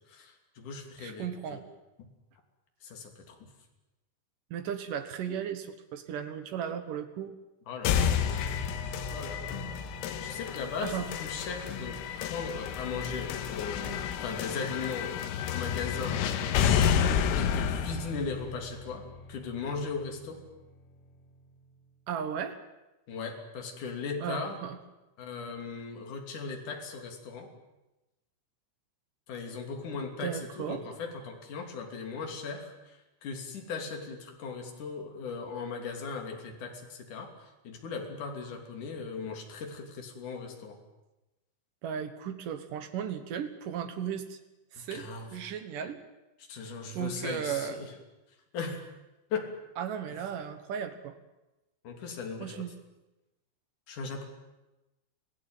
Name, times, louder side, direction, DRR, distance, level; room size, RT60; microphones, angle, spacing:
voice 1, 0.1-1.6 2.0-2.1 2.8-3.4 7.7-8.1 9.1-9.8 10.2-15.2 15.5-16.3 17.4-20.4 23.1-24.6 25.2-27.5 29.3-40.8 44.8-45.3 46.5-47.9 48.5-48.9 49.3-49.5 51.8-52.7 53.9-54.3, left 5 dB, 45° left, 3 dB, 4.0 m, -38 dB
voice 2, 1.0-1.7 4.5-7.3 10.8-11.1 22.1-22.6 24.2-24.8 30.2-30.8 41.8-44.4 44.7-45.1 45.3-46.0 46.9-47.9 49.8-51.2 52.4-52.7, right 8 dB, 65° right, 9 dB, 2.2 m, -35 dB
sound 1, 7.8-19.8, left 8 dB, 85° left, 3.9 m, -30 dB
26.5 x 17.0 x 9.2 m, 1.0 s
omnidirectional pair, 5.7 m